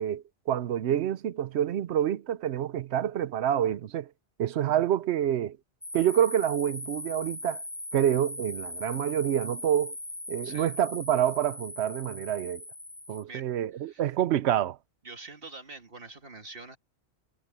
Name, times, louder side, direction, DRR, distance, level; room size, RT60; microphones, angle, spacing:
voice 1, 0.0-4.1 4.4-5.6 5.9-7.6 7.9-9.9 10.3-12.6 13.1-14.8, right 10 dB, 75° right, 0.9 m, -27 dB
sound 1, 5.8-13.2, left 1 dB, 10° left, 0.3 m, -40 dB
voice 2, 13.7-14.0 15.0-16.8, right 3 dB, 55° right, 2.2 m, -45 dB
omnidirectional pair, 1.1 m